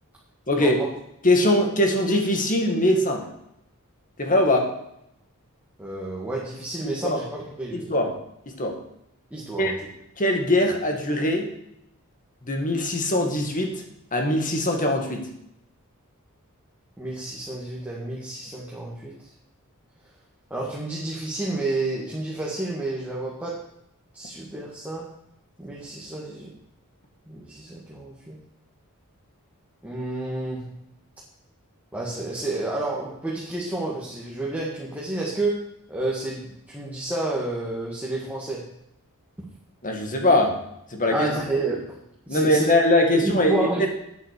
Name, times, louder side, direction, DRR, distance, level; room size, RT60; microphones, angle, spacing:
voice 1, 1.2-3.3 4.2-4.7 6.8-7.2 7.7-8.1 8.5-8.8 9.6-9.7 10.2-11.5 12.5-13.8 14.1-15.3 39.8-40.6 40.9-41.3 42.3-43.9, left 1 dB, 35° left, 3 dB, 2.0 m, -22 dB
voice 2, 5.8-8.0 9.3-9.8 17.0-19.2 20.5-23.7 24.1-25.1 25.6-26.5 27.3-28.4 29.8-30.7 31.9-38.7 41.1-41.9 42.3-42.7 43.1-43.9, right 2 dB, 5° right, -5 dB, 1.9 m, -30 dB
9.5 x 7.7 x 6.7 m, 0.79 s
head